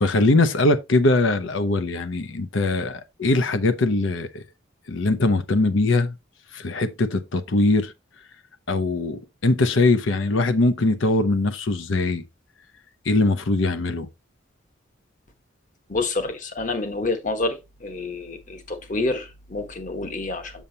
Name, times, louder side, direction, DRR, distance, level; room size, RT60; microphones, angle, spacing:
voice 1, 0.0-4.4 4.9-6.1 6.5-7.9 8.7-12.2 13.0-14.1, left 2 dB, 75° left, 0.8 m, -21 dB
voice 2, 15.9-17.6 17.8-20.5, left 2 dB, 40° left, 1.3 m, -28 dB
7.2 x 6.8 x 2.8 m
head